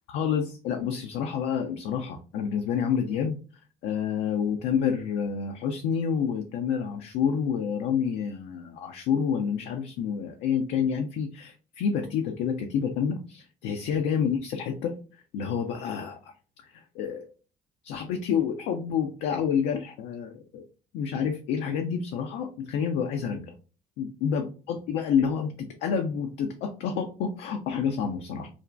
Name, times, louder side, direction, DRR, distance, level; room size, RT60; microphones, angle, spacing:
voice 1, 0.1-3.4 3.8-15.0 15.3-16.3 16.7-17.3 17.8-20.6 20.9-23.5 24.0-28.5, left 7 dB, 65° left, 4 dB, 0.4 m, -28 dB
2.5 x 2.1 x 3.2 m, 0.37 s
hypercardioid pair, 45°, 20 cm